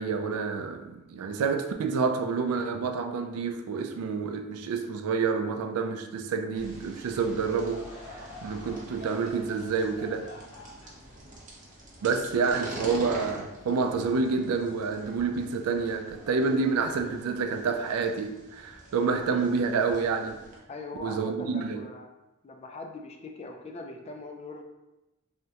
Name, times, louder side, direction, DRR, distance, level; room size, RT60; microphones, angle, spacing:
voice 1, 0.0-7.9 8.4-10.3 12.0-20.4 21.0-21.8, right 5 dB, 90° right, 6 dB, 0.3 m, -28 dB
sound 1, 6.5-20.6, right 1 dB, 35° right, 0.6 m, -45 dB
Laughter / Crowd, 7.5-12.9 13.5-13.6 14.4-14.6, left 2 dB, 80° left, 0.7 m, -48 dB
voice 2, 20.7-22.1 22.4-24.6, left 3 dB, 30° left, 3 dB, 0.3 m, -41 dB
3.5 x 2.1 x 2.8 m, 0.97 s
head